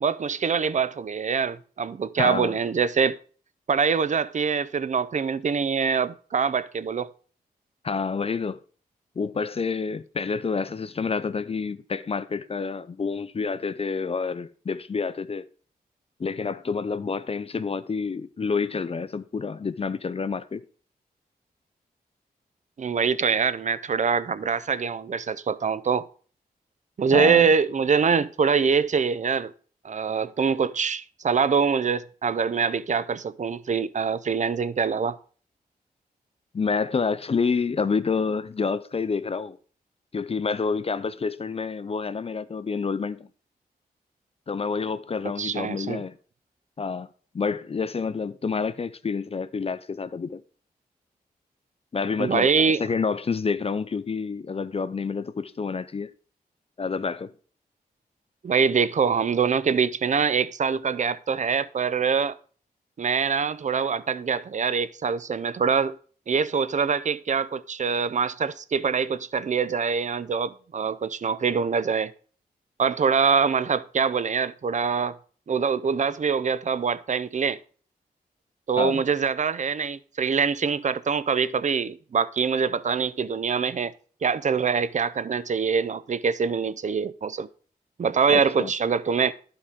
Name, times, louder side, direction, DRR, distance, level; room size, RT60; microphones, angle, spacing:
voice 1, 0.0-3.2 3.7-7.1 22.8-26.0 27.0-29.5 29.8-35.2 45.4-46.0 52.2-52.8 58.4-62.4 63.0-66.0 66.3-72.1 72.8-75.1 75.5-77.6 78.7-83.9 84.2-87.5 88.0-89.3, right 6 dB, 50° right, 0.5 m, -24 dB
voice 2, 2.2-2.6 7.8-8.6 9.2-15.5 16.2-20.6 27.1-27.5 36.5-39.6 40.1-43.3 44.5-46.2 46.8-47.1 47.3-50.4 51.9-56.1 56.8-57.3 78.8-79.0 88.3-88.7, left 5 dB, 40° left, 0.5 m, -28 dB
11.0 x 4.8 x 3.6 m
cardioid pair, 50°, 16 cm